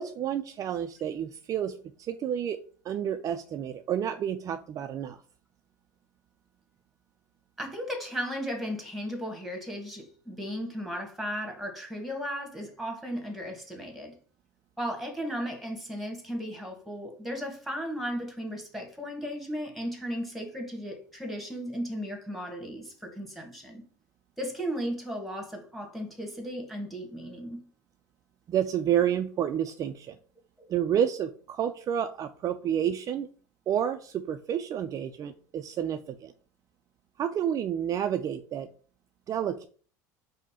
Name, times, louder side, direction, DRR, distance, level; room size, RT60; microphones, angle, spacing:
voice 1, 0.0-2.6 2.8-5.2 28.5-30.2 30.7-33.3 33.7-36.3 37.2-38.7 39.3-39.7, right 9 dB, 35° right, 0.4 m, -30 dB
voice 2, 7.6-14.1 14.8-23.8 24.4-27.7 30.6-30.7, equal, ahead, 1.5 m, -35 dB
5.1 x 2.1 x 4.3 m
hypercardioid pair, 70°, 10 cm